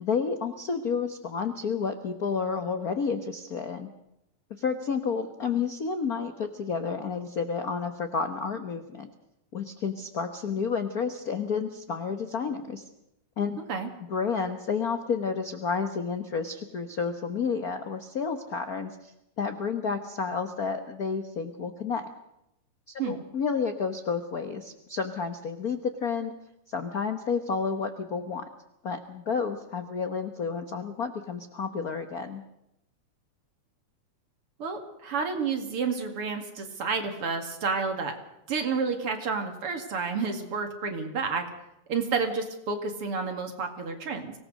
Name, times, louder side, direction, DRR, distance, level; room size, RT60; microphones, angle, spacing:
voice 1, 0.0-3.9 4.6-9.1 9.5-12.9 13.4-13.6 14.1-22.1 23.0-26.3 26.7-28.4 28.8-32.4, left 5 dB, 60° left, 8 dB, 0.9 m, -30 dB
voice 2, 34.6-38.1 38.5-41.4 41.9-44.3, right 5 dB, 50° right, 5 dB, 2.9 m, -30 dB
24.5 x 18.0 x 6.5 m, 0.84 s
omnidirectional pair, 3.4 m